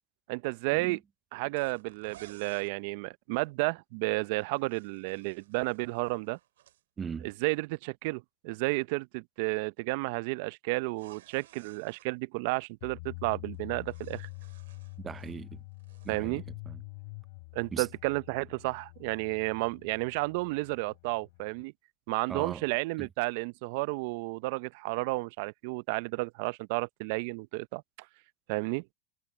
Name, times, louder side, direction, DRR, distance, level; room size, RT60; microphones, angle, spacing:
voice 1, 0.3-1.0 1.3-6.4 7.2-14.3 16.1-16.4 17.5-21.7 22.1-27.8 28.5-28.8, right 25 dB, 65° right, 0.6 m, -32 dB
sound 1, 1.5-2.7 4.4-6.8 10.9-12.1 13.5-15.4 15.7-16.2, right 13 dB, 80° right, 2.2 m, -57 dB
voice 2, 7.0-7.3 15.0-15.6 16.0-16.8 17.7-17.9 22.3-22.6 23.0-23.1, right 6 dB, 25° right, 0.6 m, -39 dB
sound 2, 12.8-21.6, left 26 dB, 65° left, 5.2 m, -46 dB
hypercardioid pair, 100°, 0 cm